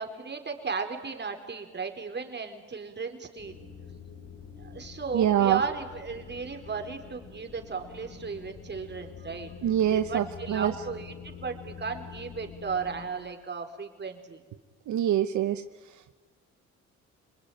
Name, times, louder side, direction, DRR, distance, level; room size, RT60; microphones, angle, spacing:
voice 1, 0.0-3.5 4.6-9.5 9.8-14.4, right 5 dB, 35° right, 4 dB, 4.4 m, -35 dB
sound 1, 3.4-13.1, left 6 dB, 60° left, 4.5 m, -46 dB
voice 2, 5.1-5.6 9.6-10.7 14.9-15.6, right 11 dB, 70° right, 10 dB, 1.0 m, -24 dB
27.0 x 21.0 x 9.4 m, 1.3 s
cardioid pair, 90°, 30 cm